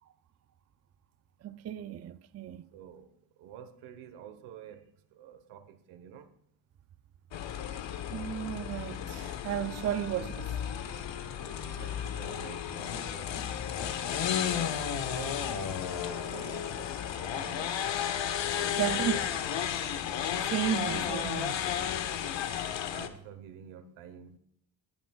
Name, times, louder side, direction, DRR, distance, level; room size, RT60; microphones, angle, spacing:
voice 1, 1.4-2.7 8.1-10.5 18.7-19.2 20.5-21.6, right 10 dB, 35° right, 0.5 m, -33 dB
voice 2, 2.7-3.1 3.4-4.8 5.1-6.3 11.7-13.3 15.0-15.5 15.9-17.7 18.5-19.3 22.9-24.4, right 9 dB, 80° right, 1.3 m, -48 dB
sound 1, 7.3-23.1, left 9 dB, 60° left, 1.2 m, -33 dB
sound 2, 8.9-17.6, left 6 dB, 35° left, 1.7 m, -49 dB
20.0 x 9.2 x 2.4 m
cardioid pair, 80°, 49 cm